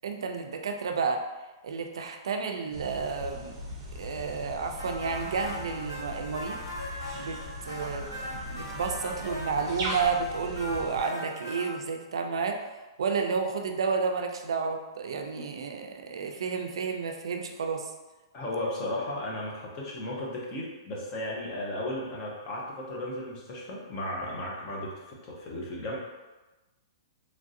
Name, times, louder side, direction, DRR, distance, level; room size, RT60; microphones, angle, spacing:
voice 1, 0.0-1.3 1.6-3.6 4.0-6.6 7.1-12.6 13.0-17.9, right 5 dB, 85° right, 4 dB, 0.4 m, -31 dB
sound 1, 2.7-11.0, equal, 30° right, 0.6 m, -39 dB
sound 2, 4.8-11.7, left 1 dB, 60° left, 1.2 m, -40 dB
voice 2, 18.3-26.0, left 1 dB, 20° left, -3 dB, 0.5 m, -35 dB
3.1 x 2.5 x 2.6 m, 1.1 s
hypercardioid pair, 180°, 3 cm